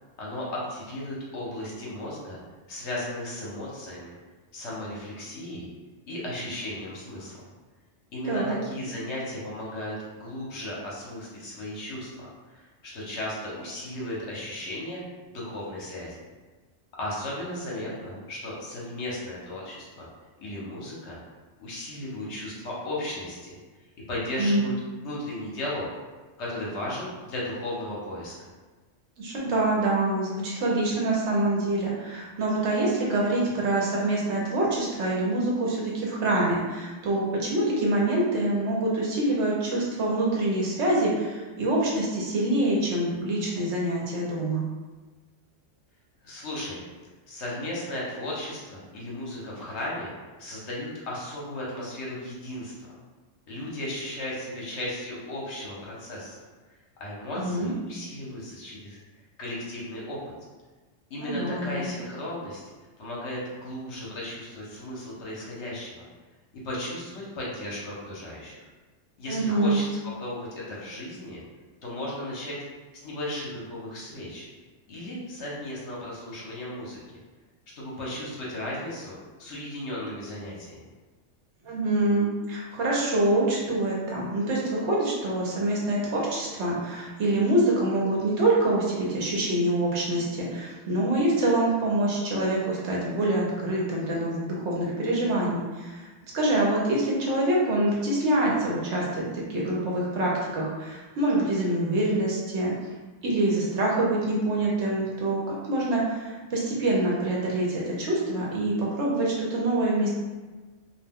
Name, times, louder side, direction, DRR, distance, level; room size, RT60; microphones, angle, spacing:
voice 1, 0.2-2.4 2.7-4.2 4.5-5.7 6.1-7.4 8.1-16.2 17.0-20.1 20.4-21.2 21.6-23.6 24.1-24.7 25.0-25.9 26.4-28.5 46.2-46.8 47.3-50.1 50.4-52.7 53.5-56.4 57.0-59.0 59.4-60.3 61.1-62.6 63.0-66.1 66.5-68.6 69.2-71.4 71.8-72.6 73.0-74.5 74.9-77.2 77.8-80.8, left 1 dB, 65° left, -5 dB, 1.0 m, -35 dB
voice 2, 29.2-44.6 57.4-57.7 61.2-61.9 69.3-69.8 81.6-96.1 96.3-102.7 103.2-110.1, right 1 dB, 65° right, -4 dB, 0.9 m, -25 dB
2.4 x 2.2 x 3.4 m, 1.3 s
omnidirectional pair, 1.3 m